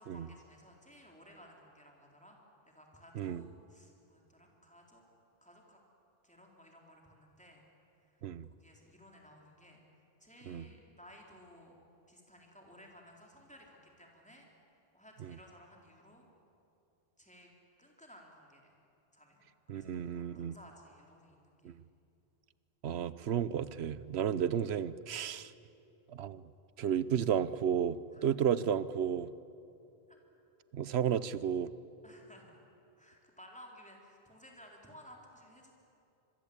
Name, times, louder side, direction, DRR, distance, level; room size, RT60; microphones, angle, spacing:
voice 1, 0.0-2.4 2.7-5.0 5.4-5.8 6.2-7.6 8.5-9.8 10.2-11.7 12.1-14.5 14.9-16.3 17.2-17.5 17.8-18.7 19.1-21.8 24.1-24.2 28.1-28.3 30.1-30.2 32.0-32.5 33.0-35.7, equal, 5° left, -1 dB, 3.9 m, -57 dB
voice 2, 19.7-20.5 21.6-21.7 22.8-25.5 26.1-26.4 26.8-29.3 30.7-31.7, right 8 dB, 85° right, 16 dB, 1.0 m, -32 dB
26.0 x 22.0 x 8.7 m, 2.7 s
omnidirectional pair, 1.0 m